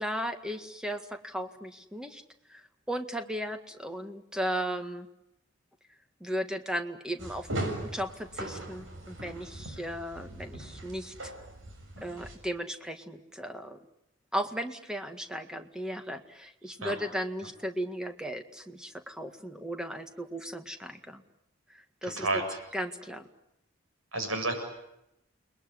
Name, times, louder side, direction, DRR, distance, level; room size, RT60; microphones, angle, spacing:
voice 1, 0.0-2.2 2.5-5.1 6.2-11.3 12.0-13.8 14.3-21.2 21.7-22.4 22.7-23.3, equal, 5° right, 6 dB, 1.9 m, -36 dB
stairs up and down, 7.2-12.3, right 1 dB, 70° right, 7.1 m, -39 dB
voice 2, 22.0-22.6 24.1-24.5, right 2 dB, 85° right, 5 dB, 7.1 m, -30 dB
30.0 x 21.0 x 9.6 m, 0.86 s
head